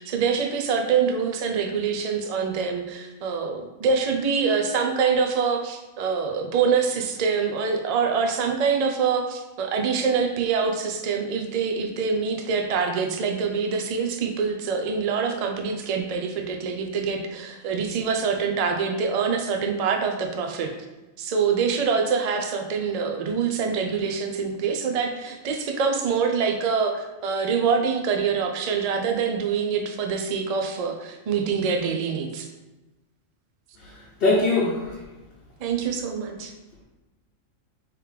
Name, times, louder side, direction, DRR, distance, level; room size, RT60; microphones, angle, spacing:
voice 1, 0.0-20.7 21.2-32.5 35.6-36.5, right 5 dB, 65° right, 4 dB, 0.3 m, -25 dB
voice 2, 33.8-35.0, left 2 dB, 50° left, -7 dB, 1.0 m, -23 dB
3.3 x 3.1 x 4.8 m, 1.1 s
omnidirectional pair, 1.3 m